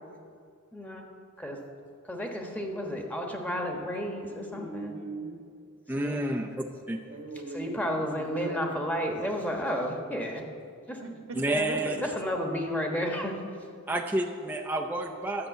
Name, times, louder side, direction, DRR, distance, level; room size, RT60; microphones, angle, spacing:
voice 1, 0.7-1.1 1.4-1.6 2.0-5.0 5.9-6.4 7.5-10.4 10.9-11.0 11.4-13.4, equal, 10° left, 2 dB, 1.2 m, -32 dB
voice 2, 4.5-5.4 7.1-9.1 11.0-11.4 11.7-11.8 13.9-14.0, right 3 dB, 85° right, 2 dB, 1.7 m, -40 dB
voice 3, 5.9-6.6 6.9-7.0 11.3-12.0 13.9-15.5, right 1 dB, 10° right, 0 dB, 0.5 m, -29 dB
11.5 x 6.8 x 8.2 m, 2.3 s
head